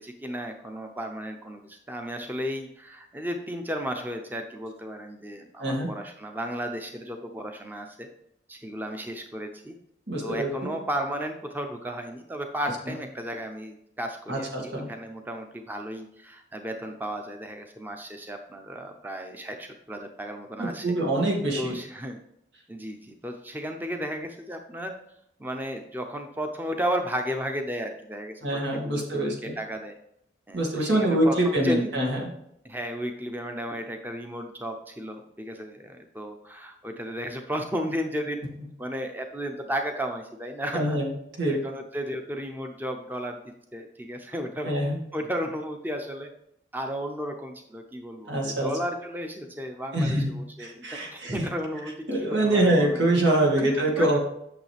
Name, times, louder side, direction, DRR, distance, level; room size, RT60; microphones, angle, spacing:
voice 1, 0.0-8.1 8.5-9.7 10.2-20.9 21.6-22.2 22.7-24.9 25.4-30.0 30.5-31.9 32.6-38.4 38.8-41.0 41.5-43.4 43.7-44.7 45.1-46.3 46.7-50.8 51.1-53.1 53.6-53.7 54.0-54.2, equal, 10° right, 4 dB, 0.6 m, -34 dB
voice 2, 5.6-5.9 10.1-10.7 14.3-14.9 20.6-21.8 28.4-29.5 30.5-32.2 40.7-41.1 41.4-41.6 44.6-45.0 48.3-48.7 49.9-50.3 50.6-51.4 52.1-54.2, right 1 dB, 85° right, -1 dB, 2.2 m, -24 dB
8.8 x 6.4 x 3.4 m, 0.76 s
head